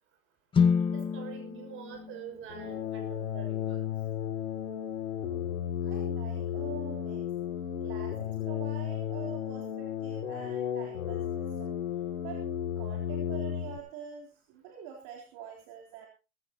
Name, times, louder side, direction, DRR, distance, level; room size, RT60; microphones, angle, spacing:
sound 1, 0.5-4.6, left 6 dB, 10° left, 1.1 m, -31 dB
voice 1, 0.8-3.8, right 8 dB, 30° right, 5 dB, 6.1 m, -45 dB
sound 2, 2.5-13.8, left 9 dB, 75° left, 2.8 m, -34 dB
voice 2, 5.8-7.3 7.8-11.8 12.2-12.5 12.8-16.1, right 8 dB, 45° right, 0 dB, 3.7 m, -46 dB
19.0 x 15.5 x 3.0 m, 0.32 s
hypercardioid pair, 140°, 41 cm